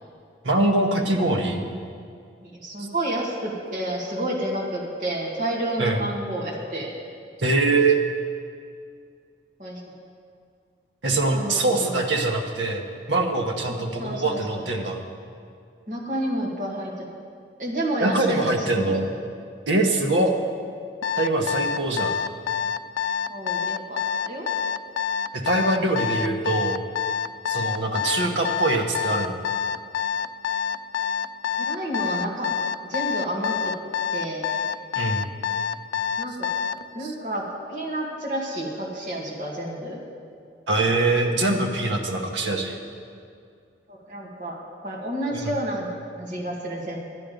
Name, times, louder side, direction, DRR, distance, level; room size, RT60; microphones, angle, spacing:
voice 1, 0.4-1.7 5.8-6.0 7.4-8.0 11.0-15.0 18.0-19.0 19.7-20.4 21.2-22.2 25.3-26.8 27.5-29.4 34.9-35.3 40.7-42.8 45.3-45.5, right 2 dB, 90° right, 3 dB, 1.1 m, -23 dB
voice 2, 2.4-6.9 9.6-9.8 11.3-12.0 14.0-14.6 15.9-16.9 17.6-19.0 20.1-20.3 23.3-24.5 28.1-28.4 31.6-32.5 32.9-33.7 34.1-34.5 36.2-36.5 36.9-37.4 37.7-40.0 43.9-44.6 44.8-45.9 46.2-47.0, right 1 dB, 45° right, -4 dB, 1.9 m, -30 dB
Alarm, 21.0-36.8, left 7 dB, 85° left, 0.3 m, -26 dB
12.0 x 9.5 x 5.1 m, 2.3 s
head